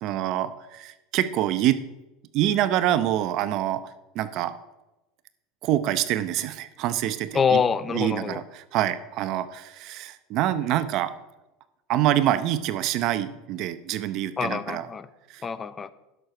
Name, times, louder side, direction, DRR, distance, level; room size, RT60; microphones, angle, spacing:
voice 1, 0.0-1.8 2.3-3.8 4.1-4.5 5.6-7.6 7.9-8.4 8.7-11.1 11.9-14.8 15.3-15.4, right 12 dB, 55° right, 13 dB, 0.7 m, -25 dB
voice 2, 7.3-8.4 14.4-15.1 15.4-15.9, left 6 dB, 25° left, 16 dB, 0.6 m, -25 dB
11.0 x 6.6 x 5.9 m, 1.0 s
supercardioid pair, 125°, 0 cm